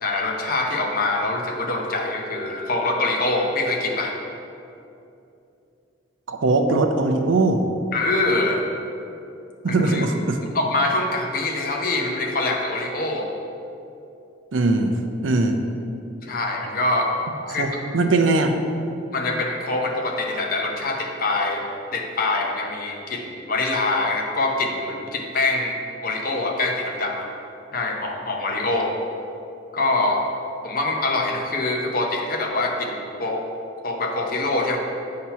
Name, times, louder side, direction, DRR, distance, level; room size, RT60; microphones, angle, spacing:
voice 1, 0.0-4.2 7.9-8.7 9.7-10.1 10.5-13.3 16.2-17.1 17.5-17.7 19.1-21.7 21.9-25.8 26.0-27.3 27.7-29.0 29.7-30.2 30.6-33.4 33.8-34.8, left 2 dB, 50° left, 1 dB, 0.7 m, -24 dB
voice 2, 6.3-7.6 9.6-10.4 14.5-15.6 17.5-17.7 17.9-18.5, right 2 dB, 85° right, 6 dB, 0.5 m, -20 dB
7.5 x 2.9 x 5.6 m, 2.7 s
head